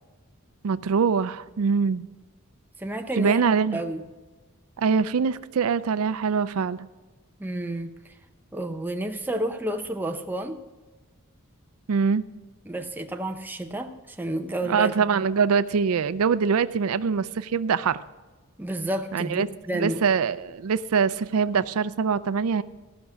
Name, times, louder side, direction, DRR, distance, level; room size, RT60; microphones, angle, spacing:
voice 1, 0.6-2.1 3.2-3.8 4.8-6.9 11.9-12.2 14.6-18.0 19.1-19.5 19.7-22.6, right 5 dB, 85° right, 15 dB, 0.4 m, -23 dB
voice 2, 2.8-3.4 3.7-4.0 7.4-8.1 8.5-10.6 12.6-14.9 18.6-20.0, right 1 dB, 10° right, 4 dB, 0.7 m, -30 dB
15.5 x 6.0 x 6.3 m, 1.3 s
head